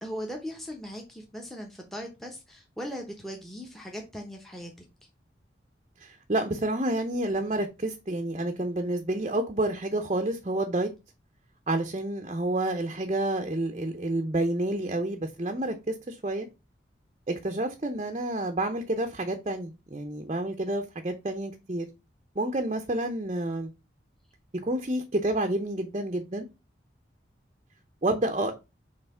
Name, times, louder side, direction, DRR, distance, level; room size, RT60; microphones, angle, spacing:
voice 1, 0.0-4.7, equal, ahead, 3 dB, 0.9 m, -39 dB
voice 2, 6.0-10.9 11.7-16.5 17.3-21.9 22.4-23.7 24.6-26.5 28.0-28.5, right 1 dB, 35° right, 5 dB, 0.7 m, -29 dB
5.7 x 3.4 x 5.6 m, 0.26 s
head